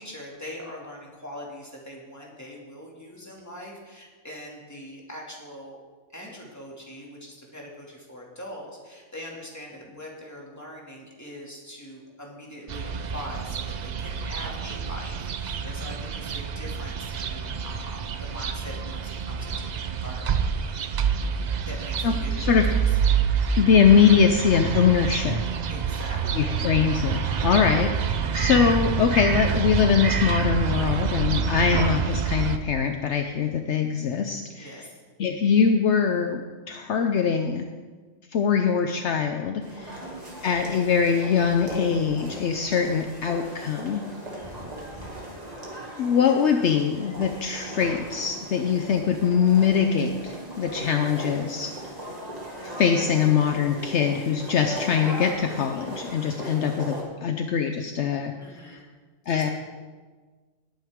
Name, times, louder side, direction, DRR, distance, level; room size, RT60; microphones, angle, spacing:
voice 1, 0.0-5.8 6.1-21.0 21.6-23.0 25.7-26.6 27.4-27.7 34.6-35.0 39.8-40.2 44.4-44.7 58.4-58.9 59.2-59.5, equal, 15° left, -3 dB, 2.4 m, -42 dB
sound 1, 12.7-32.6, right 6 dB, 50° right, 0.5 m, -27 dB
voice 2, 23.6-25.4 26.4-34.8 35.2-37.7 38.3-40.0 40.4-44.0 46.0-51.7 52.6-58.3 58.7-58.8 59.3-59.5, left 7 dB, 65° left, 5 dB, 0.9 m, -22 dB
sound 2, 39.6-57.0, right 1 dB, 30° right, 2.3 m, -38 dB
18.5 x 9.0 x 3.6 m, 1.4 s
omnidirectional pair, 1.3 m